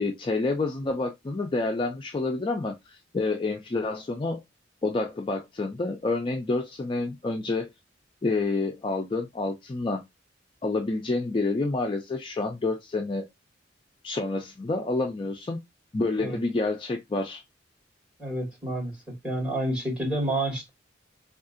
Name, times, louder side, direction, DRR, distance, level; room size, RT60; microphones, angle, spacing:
voice 1, 0.0-4.4 4.8-7.7 8.2-10.0 10.6-13.2 14.0-15.6 15.9-17.4, left 3 dB, 25° left, 0.3 m, -28 dB
voice 2, 18.2-20.7, right 1 dB, 5° right, 2.0 m, -29 dB
3.6 x 2.4 x 2.5 m
head